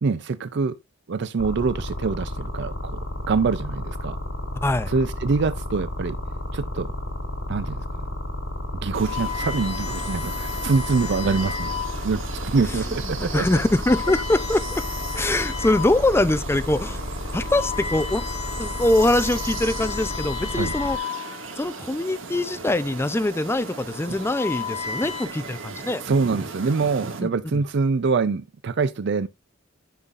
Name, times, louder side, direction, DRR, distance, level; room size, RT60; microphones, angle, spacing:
voice 1, 0.0-0.8 1.1-3.0 3.3-4.2 4.9-6.2 6.5-6.9 7.5-7.9 8.7-11.7 12.0-13.5 20.5-20.7 26.0-29.3, right 4 dB, 60° right, 0.5 m, -24 dB
sound 1, 1.4-21.0, left 1 dB, 75° left, 2.9 m, -32 dB
sound 2, 8.8-12.2 12.9-13.1 13.6-16.1 16.5-16.7 17.2-21.6 22.6-23.0 23.9-25.3, left 7 dB, 35° left, 1.2 m, -34 dB
sound 3, 8.9-27.2, right 4 dB, 75° right, 1.9 m, -37 dB
voice 2, 13.2-14.8 15.1-17.0 17.3-18.2 18.6-21.0 21.6-26.0 27.2-27.6, left 1 dB, 10° left, 0.5 m, -23 dB
13.5 x 5.7 x 2.5 m
head